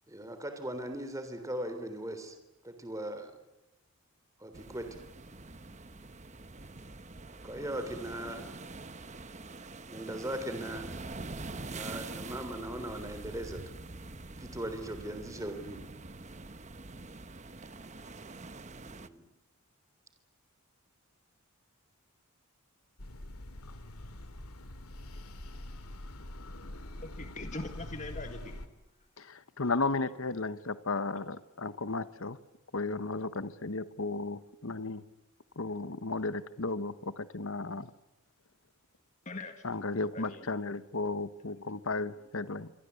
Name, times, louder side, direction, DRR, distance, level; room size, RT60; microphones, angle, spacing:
voice 1, 0.1-2.3 2.6-3.3 4.4-5.0 7.4-8.5 9.9-10.9 11.6-13.6 14.4-15.8 18.8-19.3, right 1 dB, 15° right, 7 dB, 3.4 m, -39 dB
sound 1, 4.5-19.1, right 3 dB, 30° right, 1.0 m, -45 dB
sound 2, 23.0-28.7, left 1 dB, 85° left, 2.5 m, -44 dB
voice 2, 27.0-28.6 39.3-39.7 40.1-40.5, left 2 dB, 35° left, 6 dB, 1.8 m, -41 dB
voice 3, 29.2-32.4 32.7-35.0 35.6-37.9 39.6-42.7, left 3 dB, 65° left, 14 dB, 1.1 m, -34 dB
27.0 x 25.5 x 8.3 m, 0.97 s
head